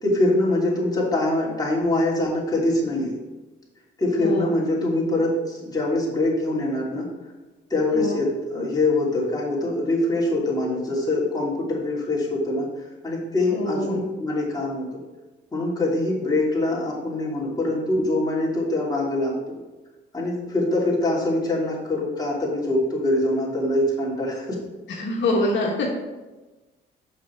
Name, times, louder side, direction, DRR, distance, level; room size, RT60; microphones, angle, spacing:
voice 1, 0.0-3.2 4.0-7.1 7.7-14.8 15.5-19.3 20.1-24.6, left 2 dB, 20° left, -5 dB, 2.7 m, -24 dB
voice 2, 4.2-4.5 7.9-8.2 13.5-14.0 24.9-25.9, left 2 dB, 70° left, -1 dB, 1.2 m, -25 dB
6.1 x 5.9 x 4.5 m, 1.1 s
cardioid pair, 90°, 20 cm